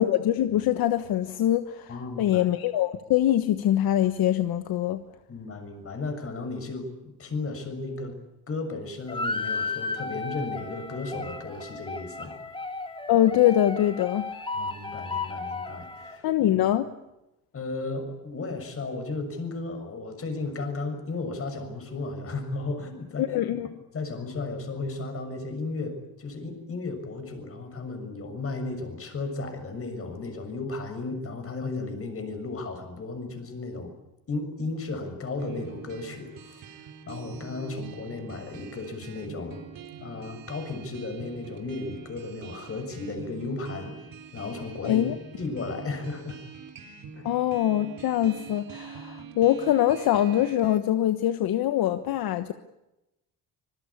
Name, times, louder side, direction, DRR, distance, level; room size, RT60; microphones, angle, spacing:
voice 1, 0.0-1.9 2.2-5.0 13.1-14.3 16.2-16.9 23.2-23.8 44.8-45.1 47.2-52.5, left 12 dB, 70° left, 10 dB, 1.3 m, -23 dB
voice 2, 1.9-2.5 5.3-8.2 8.5-12.4 14.5-16.3 17.5-23.4 23.9-33.9 34.3-39.6 40.0-44.1 44.3-45.1 45.4-46.4 47.1-47.3, left 3 dB, 35° left, 7 dB, 6.7 m, -34 dB
sound 1, 9.1-16.1, left 3 dB, 15° left, 2.8 m, -34 dB
sound 2, 35.4-50.8, right 6 dB, 60° right, 3.7 m, -44 dB
25.5 x 21.5 x 8.6 m, 0.93 s
cardioid pair, 130°, 37 cm